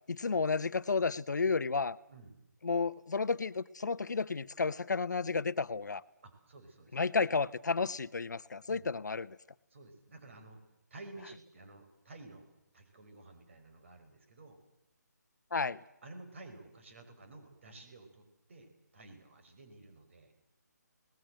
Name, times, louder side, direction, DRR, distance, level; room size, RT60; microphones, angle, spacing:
voice 1, 0.1-2.0 2.6-6.0 6.9-9.4 15.5-15.8, left 4 dB, 75° left, 16 dB, 1.0 m, -32 dB
voice 2, 6.2-7.0 8.7-8.9 9.7-10.6 10.9-12.5 12.7-14.6 16.0-20.3, right 2 dB, 40° right, 7 dB, 5.4 m, -53 dB
29.5 x 19.5 x 7.8 m, 0.90 s
hypercardioid pair, 170°, 10 cm